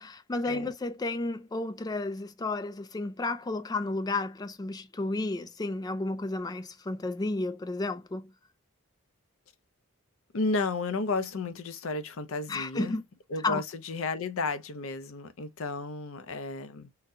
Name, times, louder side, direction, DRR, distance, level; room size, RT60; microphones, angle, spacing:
voice 1, 0.0-8.3 12.5-13.0 13.4-13.6, left 2 dB, 20° left, 0.3 m, -32 dB
voice 2, 10.3-13.0 13.3-16.9, left 3 dB, 70° left, 0.6 m, -32 dB
3.8 x 2.2 x 2.6 m
head